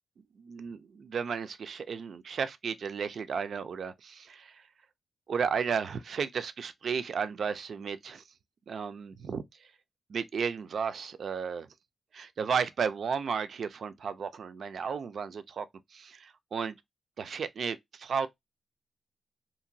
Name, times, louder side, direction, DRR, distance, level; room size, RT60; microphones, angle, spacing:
voice 1, 0.4-4.5 5.3-8.2 8.7-9.4 10.1-11.7 12.1-15.7 15.9-16.7 17.2-18.3, right 6 dB, 65° right, 0.3 m, -33 dB
2.9 x 2.5 x 2.6 m
wide cardioid pair, 120°, 0 cm